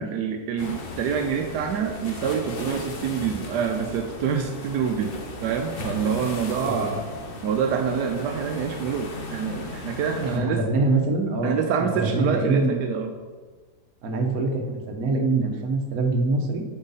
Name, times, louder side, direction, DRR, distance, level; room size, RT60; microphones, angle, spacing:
voice 1, 0.0-5.1 5.4-7.0 7.4-10.6 11.4-13.1, right 7 dB, 85° right, 4 dB, 1.2 m, -26 dB
sound 1, 0.6-10.4, left 1 dB, 45° left, 0.9 m, -36 dB
voice 2, 10.2-11.6 12.0-12.8 14.0-16.6, right 3 dB, 65° right, 3 dB, 1.3 m, -24 dB
7.3 x 4.9 x 4.1 m, 1.4 s
omnidirectional pair, 1.7 m